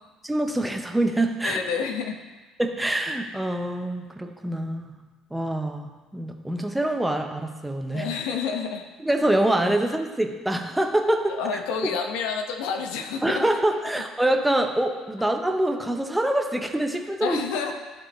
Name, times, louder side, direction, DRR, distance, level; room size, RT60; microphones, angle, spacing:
voice 1, 0.2-1.6 2.6-5.0 5.3-8.1 9.0-11.4 11.8-11.9 13.2-17.4, right 1 dB, 5° right, 4 dB, 0.6 m, -25 dB
voice 2, 1.4-2.2 7.9-8.8 11.4-13.4 17.2-17.7, left 6 dB, 85° left, 5 dB, 0.8 m, -29 dB
12.5 x 4.6 x 3.0 m, 1.3 s
cardioid pair, 115°, 0 cm